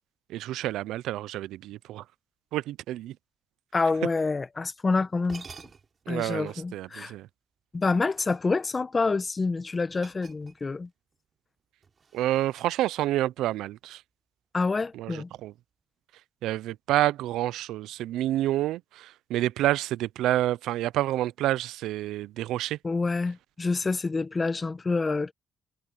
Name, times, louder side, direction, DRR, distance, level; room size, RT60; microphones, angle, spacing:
voice 1, 0.3-2.0 2.5-3.2 6.1-7.3 12.1-14.0 14.9-15.5 16.4-22.8, right 14 dB, 90° right, 0.4 m, -28 dB
voice 2, 3.7-5.4 6.1-7.1 7.7-10.9 14.5-15.3 22.8-25.3, left 3 dB, 30° left, 1.3 m, -27 dB
sound 1, 4.8-4.9 5.2-6.1 7.8-8.7 9.9-10.9 11.1-11.4 11.8-13.3, right 5 dB, 40° right, 4.1 m, -50 dB
cardioid pair, 90°, 0 cm